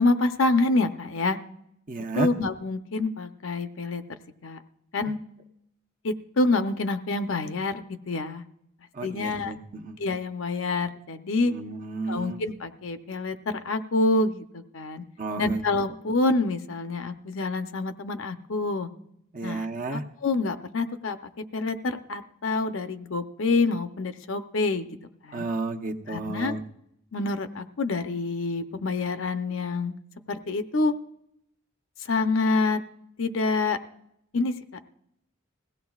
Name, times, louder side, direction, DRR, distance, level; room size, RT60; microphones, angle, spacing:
voice 1, 0.0-1.4 2.1-4.0 4.4-4.6 4.9-5.2 6.0-8.4 9.0-9.5 10.0-11.5 12.1-15.0 15.4-18.9 19.4-21.2 21.5-25.0 25.2-25.5 26.1-26.6 27.1-30.0 30.3-30.9 32.0-32.8 33.2-33.8 34.3-34.5, left 3 dB, 65° left, 9 dB, 0.7 m, -27 dB
voice 2, 1.9-2.3 9.0-10.0 11.5-12.4 15.2-15.6 19.3-20.0 25.3-26.6, right 3 dB, 40° right, 3 dB, 0.9 m, -32 dB
21.0 x 16.0 x 2.4 m, 0.76 s
head